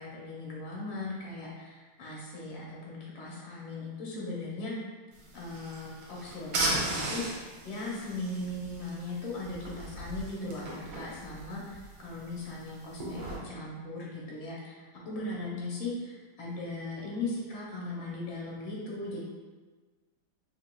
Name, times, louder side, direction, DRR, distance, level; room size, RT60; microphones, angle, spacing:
voice 1, 0.0-4.7 5.3-19.2, left 2 dB, 80° left, -4 dB, 1.6 m, -38 dB
sound 1, 5.1-13.4, right 2 dB, 65° right, 1.4 m, -37 dB
4.9 x 3.0 x 2.2 m, 1.3 s
omnidirectional pair, 2.3 m